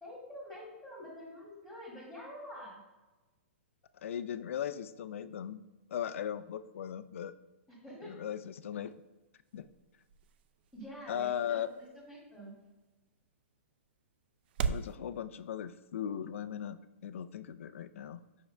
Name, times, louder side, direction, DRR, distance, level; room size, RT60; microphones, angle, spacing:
voice 1, 0.0-2.8 7.7-8.1 10.7-12.5, equal, 5° left, -7 dB, 1.8 m, -47 dB
voice 2, 4.0-5.6 5.9-7.3 8.1-8.9 9.5-9.7 11.1-11.7 14.6-18.2, left 9 dB, 70° left, 13 dB, 0.4 m, -38 dB
sound 1, 8.7-15.0, right 6 dB, 50° right, 0.3 m, -42 dB
7.1 x 5.9 x 2.2 m, 1.1 s
hypercardioid pair, 150°, 7 cm